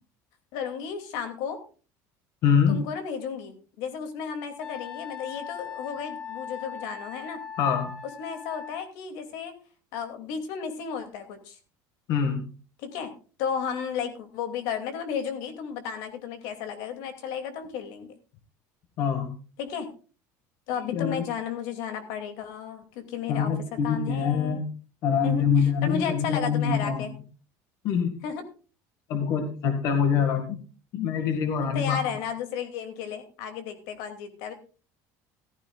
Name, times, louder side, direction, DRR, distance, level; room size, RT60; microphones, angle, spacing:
voice 1, 0.5-1.6 2.7-7.4 8.2-9.5 9.9-11.6 12.8-13.1 13.4-18.2 19.6-19.9 20.7-23.5 23.8-24.6 25.2-27.1 28.2-28.4 31.6-34.5, left 7 dB, 75° left, 7 dB, 2.6 m, -33 dB
voice 2, 2.4-2.8 7.6-8.0 12.1-12.4 19.0-19.4 20.9-21.2 23.3-24.7 25.0-27.1 27.8-28.2 29.1-30.6 30.9-32.0, left 7 dB, 50° left, 6 dB, 1.8 m, -25 dB
Wind instrument woodwind instrument, 4.6-8.8, left 7 dB, 10° left, 1.6 m, -39 dB
15.0 x 14.0 x 2.4 m, 0.36 s
cardioid pair, 170°, 7 cm